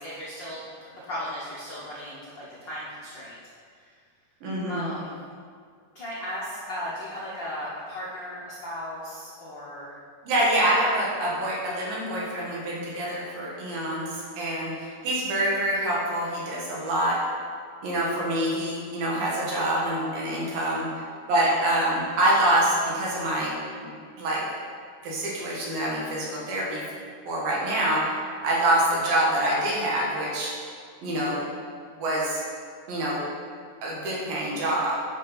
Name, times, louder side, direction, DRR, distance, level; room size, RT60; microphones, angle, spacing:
voice 1, 0.0-3.3 3.7-3.9 4.7-5.2 5.9-9.9 20.3-20.5, equal, 70° left, -8 dB, 1.0 m, -36 dB
voice 2, 4.4-4.9 10.2-17.2 17.8-20.9 21.3-23.5 23.8-23.9 24.2-24.4 25.0-26.8 27.3-28.2 28.4-30.5 31.0-31.4 32.0-32.4 32.9-33.2 33.8-35.0, right 1 dB, 85° right, -5 dB, 3.6 m, -26 dB
10.5 x 5.6 x 4.1 m, 2.1 s
omnidirectional pair, 4.1 m